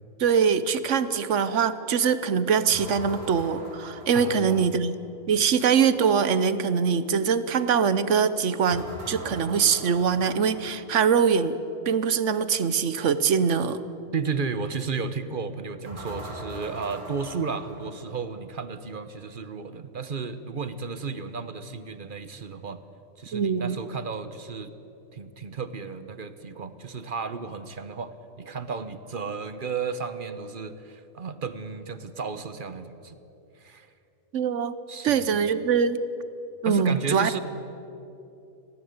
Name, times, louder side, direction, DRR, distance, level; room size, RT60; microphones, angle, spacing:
voice 1, 0.2-4.9 5.3-11.6 11.9-13.8 23.3-23.8 34.3-34.7 35.0-36.0 36.6-37.3, right 6 dB, 60° right, 13 dB, 1.1 m, -23 dB
sound 1, 2.7-5.0 8.7-11.2 15.8-18.5, right 1 dB, 90° right, 3.2 m, -41 dB
voice 2, 4.1-4.7 14.1-22.8 23.2-24.7 25.1-33.2 33.6-33.9 34.9-35.4 36.6-37.4, right 5 dB, 40° right, 12 dB, 1.0 m, -33 dB
19.0 x 15.5 x 9.5 m, 2.8 s
omnidirectional pair, 1.5 m